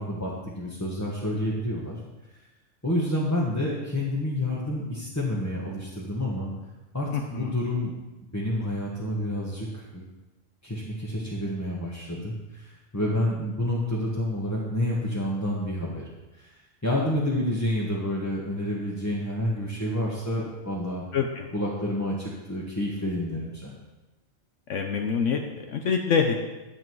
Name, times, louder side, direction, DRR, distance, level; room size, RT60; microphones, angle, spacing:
voice 1, 0.0-2.0 2.8-6.5 6.9-7.9 8.3-10.0 10.6-16.5 16.8-21.0 21.5-23.8, left 1 dB, 15° left, -5 dB, 1.3 m, -29 dB
voice 2, 7.1-7.6 21.1-21.5 24.7-26.4, left 6 dB, 70° left, 3 dB, 1.1 m, -26 dB
12.0 x 7.7 x 4.7 m, 1.1 s
omnidirectional pair, 1.4 m